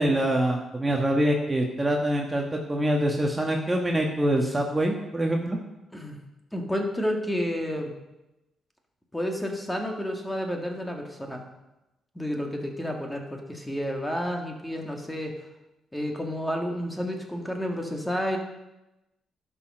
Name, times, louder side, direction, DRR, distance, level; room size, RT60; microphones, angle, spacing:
voice 1, 0.0-5.6, right 1 dB, 20° right, 1 dB, 1.4 m, -25 dB
voice 2, 6.5-7.9 9.1-11.4 12.2-15.3 15.9-18.4, equal, 5° left, 2 dB, 1.9 m, -30 dB
11.0 x 6.1 x 6.5 m, 0.97 s
cardioid pair, 70°, 0 cm